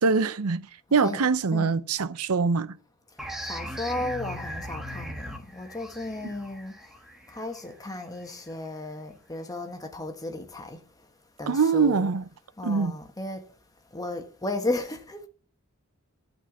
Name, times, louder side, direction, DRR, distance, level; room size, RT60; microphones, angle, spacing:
voice 1, 0.0-0.6 0.9-2.7 11.5-12.2 12.6-13.0, right 5 dB, 75° right, 0.7 m, -23 dB
voice 2, 0.9-1.8 3.1-7.0 7.3-10.8 11.4-12.2 12.6-13.5 13.9-15.3, left 2 dB, 15° left, 1.3 m, -35 dB
sound 1, 3.2-8.5, equal, ahead, 1.3 m, -39 dB
12.0 x 4.4 x 7.0 m
head